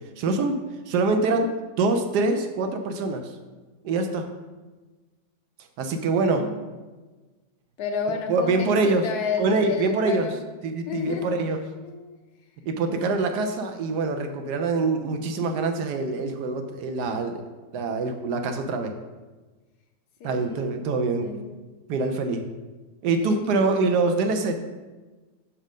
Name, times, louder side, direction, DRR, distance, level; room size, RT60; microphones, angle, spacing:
voice 1, 0.0-3.3 3.8-4.3 5.8-6.5 8.3-9.1 9.4-10.3 10.6-11.6 12.7-17.4 17.7-18.9 20.2-21.3 21.9-22.5 23.0-24.5, right 3 dB, 70° right, 6 dB, 1.1 m, -25 dB
voice 2, 7.8-10.4 10.9-11.4 11.8-12.2 20.2-20.7 21.2-21.5 23.2-23.4, left 5 dB, 70° left, 4 dB, 1.1 m, -31 dB
6.2 x 4.3 x 5.1 m, 1.3 s
omnidirectional pair, 1.9 m